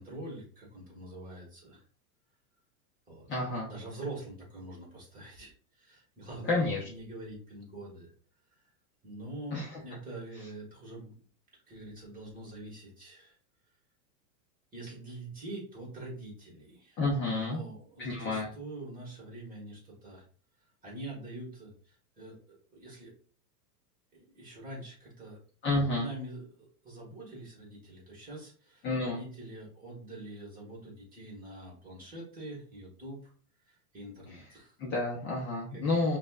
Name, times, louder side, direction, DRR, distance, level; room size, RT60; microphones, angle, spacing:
voice 1, 0.0-1.8 3.1-3.4 3.7-8.1 9.0-11.1 11.7-13.4 14.7-17.0 17.3-20.2 20.8-23.1 24.1-25.4 25.9-33.3 33.7-34.7 35.7-36.0, right 2 dB, 20° right, -4 dB, 1.6 m, -45 dB
voice 2, 3.3-3.7 6.5-6.8 9.5-9.8 17.0-17.6 18.0-18.5 25.6-26.1 28.8-29.2 34.8-36.2, left 2 dB, 25° left, -4 dB, 0.7 m, -30 dB
5.0 x 2.5 x 2.4 m, 0.43 s
supercardioid pair, 135°, 47 cm